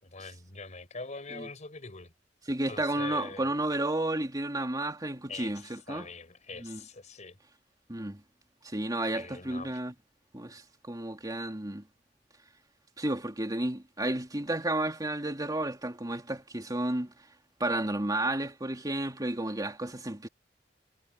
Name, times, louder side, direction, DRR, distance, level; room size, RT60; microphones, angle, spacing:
voice 1, 0.0-2.1 2.7-3.5 5.3-7.4 9.1-9.8, left 4 dB, 45° left, 4.7 m, -43 dB
voice 2, 2.5-6.1 6.6-6.8 7.9-8.2 8.6-9.9 10.3-11.8 13.0-17.1 17.6-20.3, right 1 dB, 20° right, 2.9 m, -32 dB
head